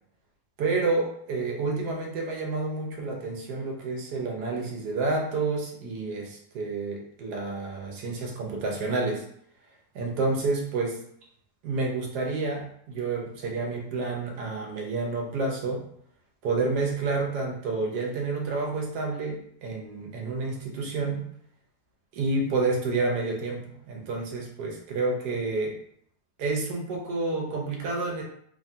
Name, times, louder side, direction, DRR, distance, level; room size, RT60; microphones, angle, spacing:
voice 1, 0.6-9.2 9.9-11.0 11.6-15.8 16.4-21.3 22.1-25.8 26.4-28.2, right 3 dB, 90° right, -1 dB, 1.3 m, -29 dB
3.1 x 2.2 x 2.6 m, 0.67 s
omnidirectional pair, 1.7 m